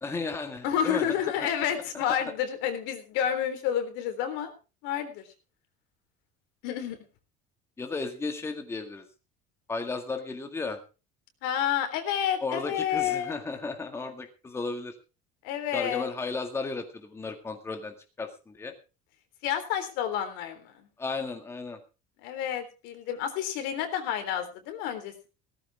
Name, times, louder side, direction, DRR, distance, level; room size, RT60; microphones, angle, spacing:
voice 1, 0.0-1.2 1.4-1.5 7.8-9.1 9.7-10.8 12.4-15.0 15.7-18.7 21.0-21.8, left 3 dB, 15° left, 5 dB, 2.0 m, -34 dB
voice 2, 0.6-4.5 4.8-5.2 6.6-7.0 11.4-13.4 15.4-16.1 19.4-20.8 22.2-25.3, left 9 dB, 75° left, 7 dB, 3.7 m, -30 dB
16.5 x 14.5 x 3.5 m, 0.32 s
cardioid pair, 145°, 19 cm